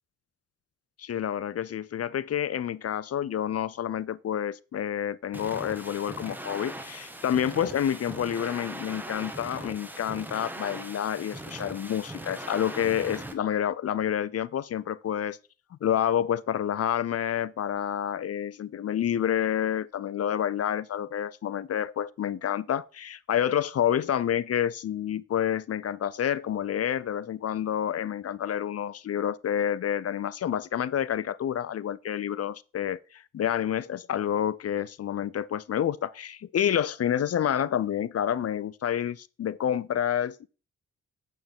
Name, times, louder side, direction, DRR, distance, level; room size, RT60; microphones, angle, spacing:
voice 1, 1.0-15.4 15.7-40.5, left 9 dB, 45° left, 0.6 m, -29 dB
sound 1, 5.3-13.3, right 1 dB, 5° right, 1.6 m, -40 dB
8.6 x 4.5 x 5.4 m
hypercardioid pair, 45°, 35 cm